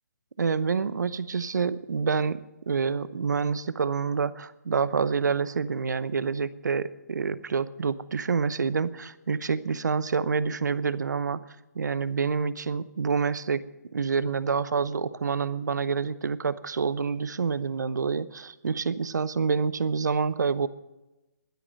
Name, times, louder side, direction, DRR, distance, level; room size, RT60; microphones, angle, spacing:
voice 1, 0.4-2.4 2.7-11.4 11.7-13.6 13.9-20.7, right 5 dB, 75° right, 16 dB, 0.8 m, -27 dB
12.5 x 10.5 x 7.4 m, 1.0 s
figure-of-eight pair, 140°, 10 cm